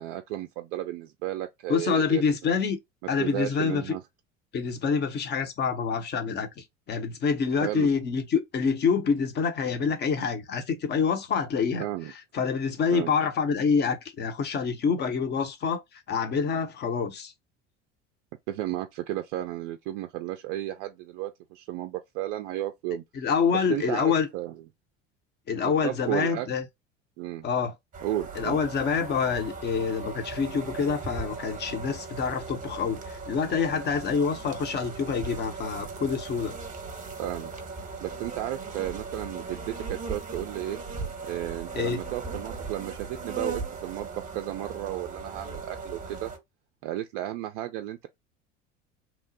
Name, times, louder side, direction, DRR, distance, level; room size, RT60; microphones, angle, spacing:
voice 1, 0.0-2.5 3.2-4.0 7.6-7.9 11.8-12.1 12.9-13.1 18.5-23.0 23.7-24.5 25.8-26.5 27.2-27.5 28.0-28.6 37.2-37.5 38.0-40.8 41.3-46.3 46.8-48.1, right 14 dB, 45° right, 0.4 m, -33 dB
voice 2, 1.7-2.8 3.1-3.9 4.5-11.8 12.3-15.8 16.1-17.3 23.1-24.3 25.5-26.6 27.4-27.7 28.4-36.5 41.7-42.0, left 6 dB, 30° left, 0.7 m, -27 dB
sound 1, 27.9-46.4, right 4 dB, 20° right, 0.9 m, -38 dB
2.9 x 2.0 x 2.7 m
figure-of-eight pair, 70°, 36 cm